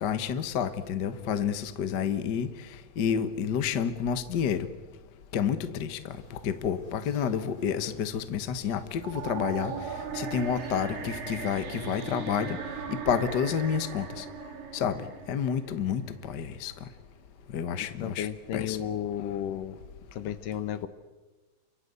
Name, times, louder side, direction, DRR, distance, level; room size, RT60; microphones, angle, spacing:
voice 1, 0.0-2.5 3.0-4.7 5.3-6.0 6.4-9.7 10.1-12.6 12.9-14.2 14.7-15.0 15.3-16.0 16.3-16.7 17.5-18.3 18.5-18.8, left 7 dB, 55° left, 10 dB, 1.2 m, -29 dB
sound 1, 6.1-11.5, left 1 dB, 10° left, 5.0 m, -52 dB
sound 2, 9.0-16.1, right 6 dB, 85° right, 4.4 m, -38 dB
voice 2, 18.0-19.8 20.2-20.9, left 10 dB, 75° left, 12 dB, 2.9 m, -33 dB
29.0 x 24.5 x 8.2 m, 1.2 s
omnidirectional pair, 3.9 m